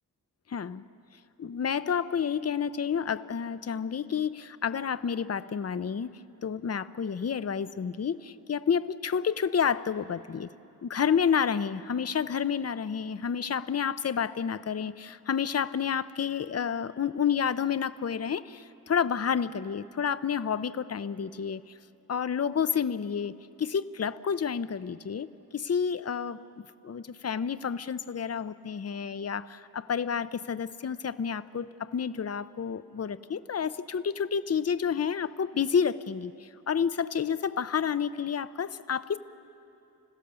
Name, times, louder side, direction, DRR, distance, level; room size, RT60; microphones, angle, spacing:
voice 1, 1.4-10.5 10.8-21.6 22.1-23.3 23.6-25.3 25.5-26.4 26.8-39.2, left 7 dB, 45° left, 14 dB, 0.6 m, -30 dB
30.0 x 16.0 x 6.8 m, 2.8 s
wide cardioid pair, 85°, 36 cm